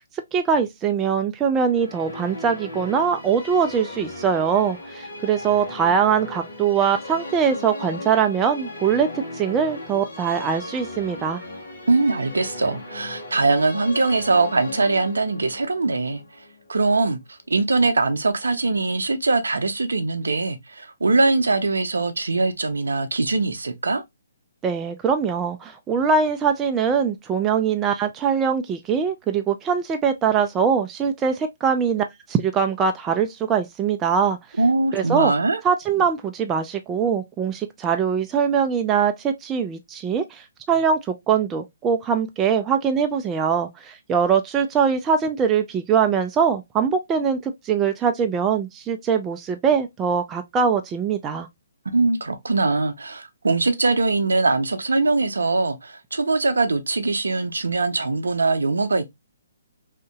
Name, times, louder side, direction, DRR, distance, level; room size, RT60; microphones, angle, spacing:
voice 1, 0.3-11.4 24.6-34.4 34.9-35.3 35.6-51.5, right 6 dB, 20° right, 0.3 m, -22 dB
Musical instrument, 1.5-17.0, left 2 dB, 75° left, 1.2 m, -37 dB
voice 2, 11.9-16.2 16.7-24.0 34.6-35.6 51.9-59.1, right 3 dB, 80° right, 0.5 m, -22 dB
2.8 x 2.6 x 2.2 m
figure-of-eight pair, 135°, 0 cm